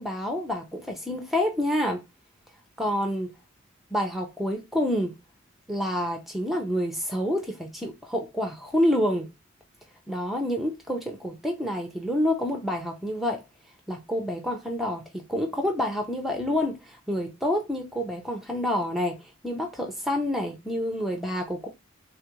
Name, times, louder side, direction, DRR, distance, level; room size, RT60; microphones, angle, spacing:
voice 1, 0.0-2.0 2.8-3.3 3.9-5.1 5.7-9.3 10.1-13.4 13.9-21.7, left 1 dB, ahead, 0.5 m, -28 dB
3.3 x 2.4 x 2.9 m
head